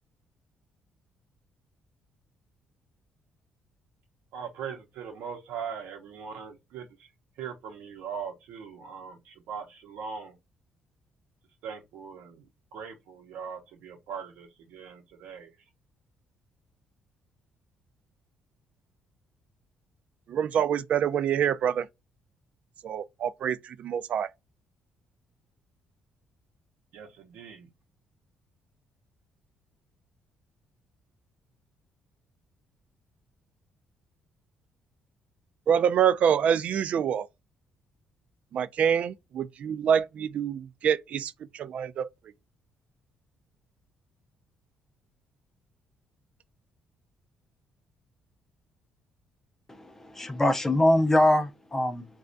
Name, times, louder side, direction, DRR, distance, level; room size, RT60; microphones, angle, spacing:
voice 1, 4.3-7.1 7.4-10.4 11.6-15.5 26.9-27.7, right 6 dB, 85° right, 0.7 m, -40 dB
voice 2, 20.3-21.9 22.8-24.3 35.7-37.3 38.5-42.1, right 8 dB, 55° right, 0.3 m, -26 dB
voice 3, 49.7-52.0, left 1 dB, 15° left, 0.5 m, -23 dB
4.2 x 2.3 x 2.5 m
cardioid pair, 140°, 3 cm